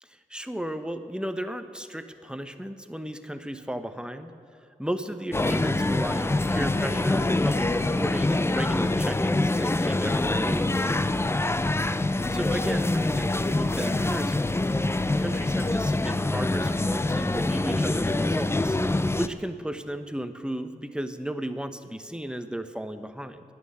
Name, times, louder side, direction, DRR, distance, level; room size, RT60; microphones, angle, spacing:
voice 1, 0.0-4.3 4.8-10.9 12.3-14.7 15.2-18.8 19.2-23.4, right 1 dB, 5° right, 9 dB, 0.9 m, -34 dB
sound 1, 5.3-19.3, left 2 dB, 15° left, 0.5 m, -25 dB
11.0 x 8.8 x 9.4 m, 2.5 s
cardioid pair, 45°, 15 cm